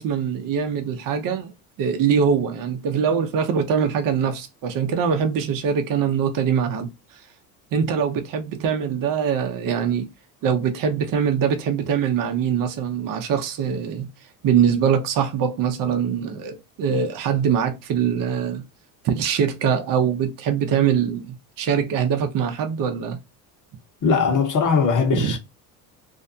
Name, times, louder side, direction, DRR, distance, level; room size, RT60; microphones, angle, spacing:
voice 1, 0.0-1.5 1.8-7.2 7.7-10.1 10.4-14.1 14.4-18.6 19.0-23.2 25.1-25.3, right 7 dB, 50° right, 0.7 m, -23 dB
voice 2, 24.0-25.4, left 5 dB, 45° left, 1.0 m, -20 dB
2.6 x 2.1 x 2.6 m
supercardioid pair, 80°, 45 cm